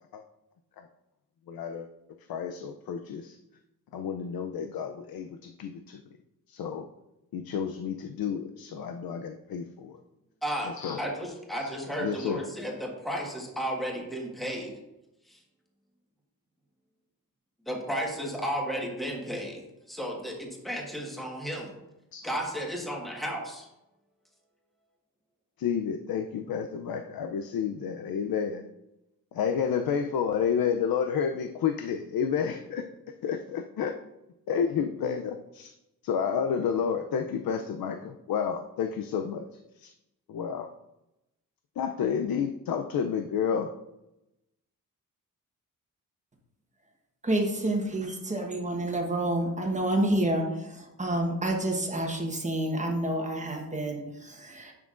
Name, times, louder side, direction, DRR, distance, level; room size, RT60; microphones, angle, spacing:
voice 1, 1.5-1.9 2.3-3.4 3.9-6.0 6.5-6.9 7.3-10.0 10.7-11.0 11.6-11.7 12.0-12.4 22.1-22.3 25.6-28.6 29.3-32.8 33.2-33.9 34.5-35.7 36.0-39.9 40.3-40.7 41.8-43.7, left 7 dB, 85° left, 6 dB, 0.6 m, -30 dB
voice 2, 10.4-10.7 11.0-14.7 15.3-15.4 17.7-19.6 19.9-21.8 22.2-23.7, equal, ahead, -1 dB, 1.4 m, -33 dB
voice 3, 47.2-54.7, right 1 dB, 20° right, 1 dB, 1.2 m, -29 dB
10.5 x 6.1 x 2.5 m, 0.92 s
wide cardioid pair, 155°, 35 cm